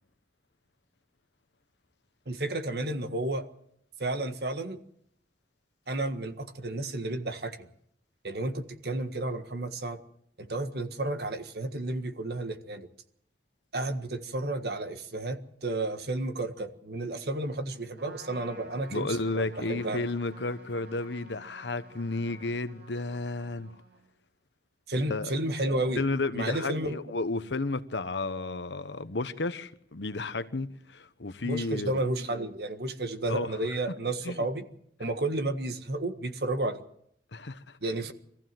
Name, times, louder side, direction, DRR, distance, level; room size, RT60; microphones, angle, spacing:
voice 1, 2.3-3.4 4.0-4.8 5.9-7.7 8.2-10.0 10.4-12.9 13.7-20.1 24.9-26.0 26.3-27.0 31.4-34.6 35.0-36.8 37.8-38.1, right 2 dB, 65° right, 1.6 m, -32 dB
Trumpet, 18.0-24.1, right 2 dB, 85° right, 5.4 m, -52 dB
voice 2, 18.9-23.7 25.0-25.3 25.9-32.0 33.3-33.6 34.2-34.5 37.3-37.8, left 3 dB, 85° left, 1.1 m, -32 dB
23.0 x 15.0 x 7.7 m
head